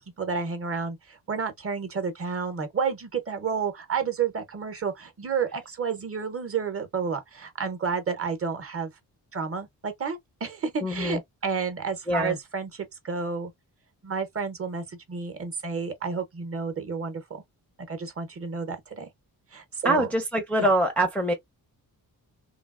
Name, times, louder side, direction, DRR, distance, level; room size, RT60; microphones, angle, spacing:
voice 1, 0.2-8.9 9.3-13.5 14.0-17.2 17.9-19.1 19.5-20.1 20.6-20.7, right 5 dB, 35° right, 0.7 m, -31 dB
voice 2, 10.8-11.2 12.1-12.4 19.8-21.3, right 1 dB, 5° left, 0.5 m, -24 dB
3.2 x 2.3 x 2.3 m
wide cardioid pair, 155°, 38 cm